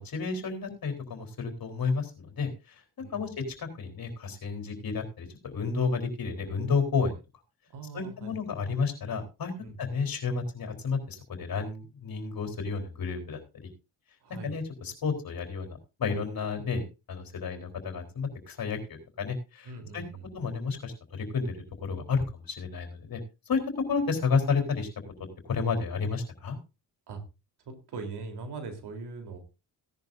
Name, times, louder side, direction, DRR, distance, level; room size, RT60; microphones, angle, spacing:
voice 1, 0.0-7.2 7.9-13.7 14.4-16.8 17.1-20.0 20.3-23.2 23.5-23.6 23.8-24.9 25.4-26.6, left 5 dB, 60° left, 4 dB, 3.9 m, -31 dB
voice 2, 7.7-8.4 9.6-9.8 14.2-14.6 19.6-20.3 27.1-27.2 27.7-29.4, right 4 dB, 80° right, 5 dB, 3.6 m, -41 dB
17.0 x 11.0 x 2.6 m, 0.28 s
cardioid pair, 85°, 39 cm